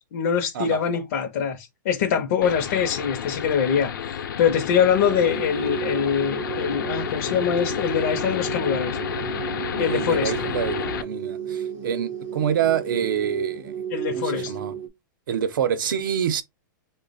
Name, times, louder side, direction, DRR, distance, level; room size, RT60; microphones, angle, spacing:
voice 1, 0.1-9.0 9.8-10.3 13.9-14.5, left 7 dB, 45° left, 0.5 m, -24 dB
sound 1, 2.4-11.0, left 8 dB, 80° left, 0.7 m, -31 dB
sound 2, 4.7-14.9, right 8 dB, 20° right, 0.4 m, -33 dB
voice 2, 9.8-13.7 14.1-14.7 15.3-16.4, right 8 dB, 80° right, 0.7 m, -26 dB
3.1 x 2.1 x 3.9 m
supercardioid pair, 175°, 11 cm